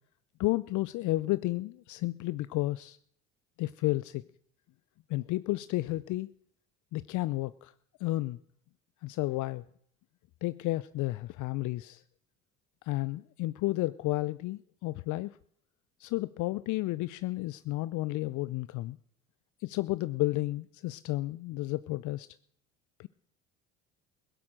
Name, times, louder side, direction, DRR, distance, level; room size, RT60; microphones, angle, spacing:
voice 1, 0.4-3.0 3.6-4.3 5.1-6.3 6.9-7.7 8.0-8.4 9.0-9.6 10.4-12.0 12.8-15.4 16.0-19.0 19.6-22.3 23.0-23.1, left 18 dB, 55° left, 17 dB, 0.5 m, -32 dB
16.5 x 11.5 x 6.4 m, 0.64 s
hypercardioid pair, 65°, 36 cm